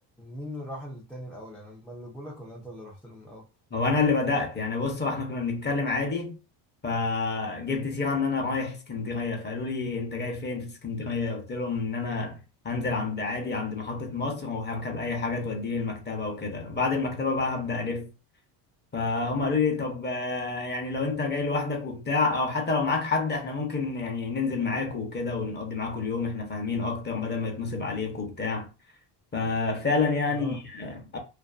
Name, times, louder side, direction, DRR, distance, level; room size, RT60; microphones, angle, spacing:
voice 1, 0.2-3.5 30.3-30.6, equal, 5° left, 0.4 m, -40 dB
voice 2, 3.7-6.4 6.8-12.4 12.6-18.1 18.9-28.7 29.3-31.2, left 4 dB, 25° left, 0.7 m, -28 dB
2.5 x 2.4 x 2.4 m
cardioid pair, 120°, 42 cm